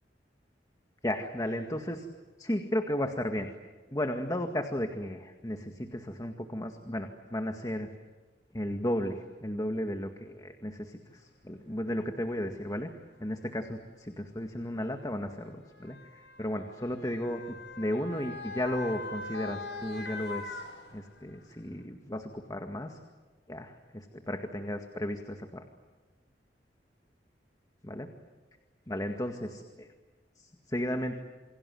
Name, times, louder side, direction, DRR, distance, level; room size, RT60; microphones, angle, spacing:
voice 1, 1.0-2.1 2.4-3.5 3.9-7.9 8.5-12.9 13.2-16.0 16.4-20.6 20.9-23.0 23.5-25.6 27.9-28.1 28.9-29.9 30.4-31.2, left 1 dB, 20° left, 5 dB, 2.0 m, -34 dB
Motor vehicle (road) / Siren, 11.4-11.5 12.5-12.7 13.8-21.4 21.8-21.9, left 3 dB, 80° left, 7.9 m, -42 dB
29.0 x 26.0 x 7.9 m, 1.3 s
head